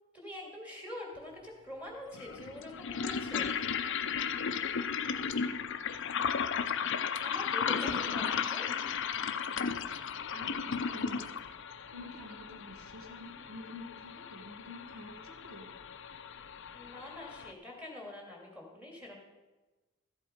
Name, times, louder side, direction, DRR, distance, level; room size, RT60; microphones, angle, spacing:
voice 1, 0.1-3.5 7.2-8.7 16.7-19.2, left 1 dB, 5° right, -2 dB, 2.4 m, -45 dB
sound 1, 1.2-1.3 2.1-17.5, left 6 dB, 55° left, 0.6 m, -35 dB
voice 2, 8.0-8.4 8.7-8.9 10.3-11.4 11.9-15.7, left 1 dB, 70° right, 3 dB, 1.7 m, -48 dB
14.0 x 8.0 x 5.0 m, 1.2 s
head